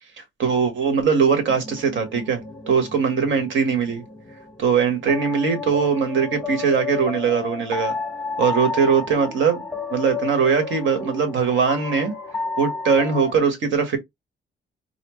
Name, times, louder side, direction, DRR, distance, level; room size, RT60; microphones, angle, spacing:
voice 1, 0.4-4.0 4.6-7.9 8.4-9.6 9.9-12.1 12.6-14.0, right 6 dB, 70° right, 1.5 m, -21 dB
sound 1, 1.5-13.3, left 4 dB, 10° left, 0.9 m, -32 dB
4.2 x 2.3 x 3.1 m
cardioid pair, 90°, 20 cm